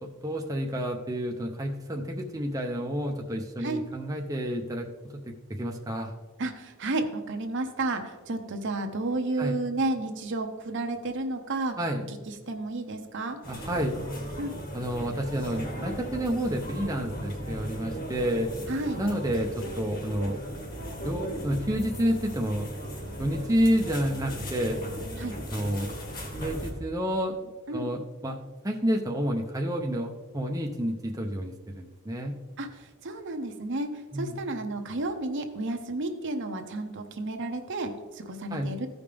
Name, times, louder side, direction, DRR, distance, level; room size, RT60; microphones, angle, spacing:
voice 1, 0.0-4.9 5.1-6.1 9.4-9.6 11.8-12.0 13.5-13.9 14.7-18.5 19.0-20.4 21.0-22.7 23.2-24.9 25.5-25.9 26.4-27.4 27.7-28.4 28.6-32.4 34.1-34.4 38.5-38.7, equal, 15° right, 1 dB, 0.6 m, -29 dB
voice 2, 6.4-11.8 12.5-13.4 14.4-14.5 18.7-19.0 25.2-25.3 27.7-27.9 32.6-32.7 33.0-33.9 34.1-38.9, right 2 dB, 55° right, 5 dB, 0.9 m, -31 dB
sound 1, 13.4-26.7, equal, 45° left, 2.0 m, -37 dB
15.0 x 5.2 x 3.4 m, 1.3 s
head